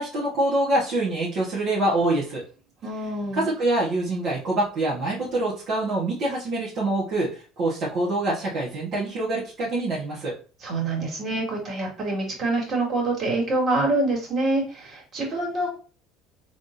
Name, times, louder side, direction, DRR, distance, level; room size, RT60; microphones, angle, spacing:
voice 1, 0.0-2.4 3.3-10.3, right 2 dB, 60° right, -6 dB, 1.3 m, -25 dB
voice 2, 2.8-3.5 10.6-15.7, right 2 dB, 45° right, -2 dB, 2.2 m, -26 dB
4.1 x 3.3 x 2.7 m, 0.37 s
supercardioid pair, 100°, 0 cm